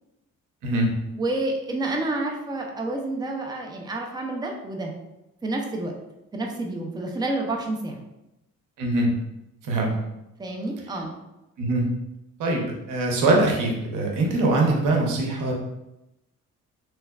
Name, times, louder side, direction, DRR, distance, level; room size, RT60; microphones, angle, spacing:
voice 1, 1.1-4.9 5.4-5.9 6.3-8.0 10.4-11.2, right 2 dB, 15° right, 1 dB, 0.5 m, -29 dB
voice 2, 8.8-9.1 9.6-9.9 11.6-11.8 12.4-15.5, right 2 dB, 85° right, 0 dB, 0.8 m, -22 dB
3.3 x 3.1 x 2.3 m, 0.92 s
cardioid pair, 90°, 30 cm